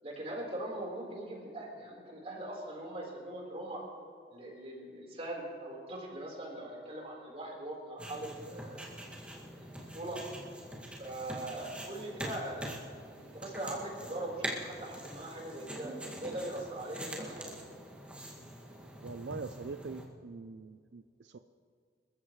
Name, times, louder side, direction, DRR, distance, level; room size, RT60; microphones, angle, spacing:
voice 1, 0.0-3.8 4.3-8.8 9.6-10.2 11.0-12.7 13.2-17.5, right 1 dB, 35° right, -2 dB, 4.2 m, -41 dB
sound 1, 8.0-20.1, right 1 dB, 5° right, 2.1 m, -44 dB
voice 2, 19.0-21.4, right 4 dB, 80° right, 10 dB, 0.5 m, -43 dB
28.0 x 14.5 x 3.2 m, 2.2 s
head